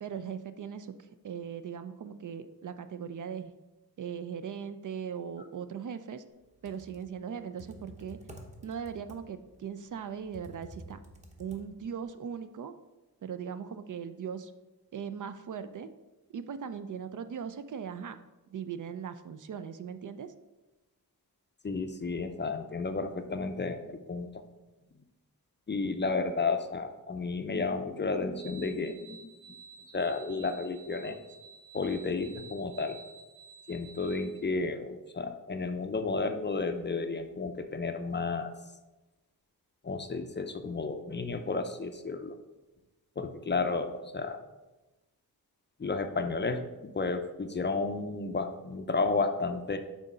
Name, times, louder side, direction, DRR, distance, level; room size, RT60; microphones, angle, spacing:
voice 1, 0.0-3.5 4.0-6.2 6.6-8.2 8.6-11.0 11.4-12.7 13.2-14.5 14.9-15.9 16.3-18.2 18.5-20.3, right 7 dB, 55° right, 11 dB, 0.4 m, -39 dB
Computer keyboard, 6.4-12.0, equal, 20° right, 0.9 m, -51 dB
voice 2, 21.6-24.3 25.7-29.6 29.9-31.2 31.7-33.0 33.7-38.5 39.8-42.4 43.2-44.4 45.8-49.8, left 3 dB, 30° left, 7 dB, 0.4 m, -32 dB
sound 1, 28.4-34.4, right 5 dB, 90° right, 1.3 m, -52 dB
6.1 x 3.9 x 5.4 m, 1.1 s
wide cardioid pair, 115°, 38 cm